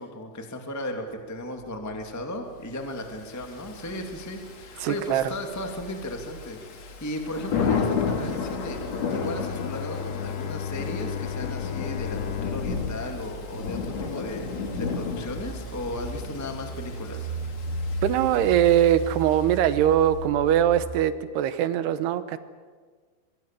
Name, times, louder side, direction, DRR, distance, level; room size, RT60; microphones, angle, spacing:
voice 1, 0.0-8.8 9.1-17.3, left 1 dB, 15° left, 3 dB, 0.6 m, -36 dB
sound 1, 1.6-20.7, right 2 dB, 20° right, 5.9 m, -39 dB
Thunder / Rain, 3.2-19.8, left 5 dB, 45° left, 2.6 m, -33 dB
voice 2, 4.8-5.2 18.0-22.4, right 11 dB, 75° right, 12 dB, 2.8 m, -22 dB
Bowed string instrument, 9.1-14.3, left 9 dB, 85° left, 3.2 m, -35 dB
23.5 x 23.0 x 7.5 m, 1.5 s
omnidirectional pair, 5.3 m